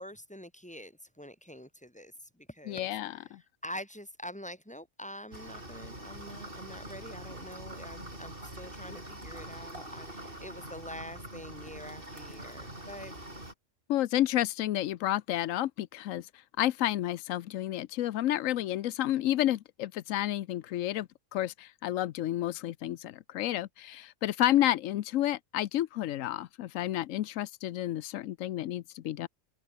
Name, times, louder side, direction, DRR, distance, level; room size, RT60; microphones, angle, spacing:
voice 1, 0.0-3.3 3.6-13.2, equal, 5° left, 4.7 m, -45 dB
voice 2, 2.7-3.4 13.9-16.3 16.6-29.3, left 13 dB, 90° left, 1.0 m, -30 dB
sound 1, 5.3-13.5, right 1 dB, 45° right, 8.2 m, -44 dB
open air
omnidirectional pair, 1.3 m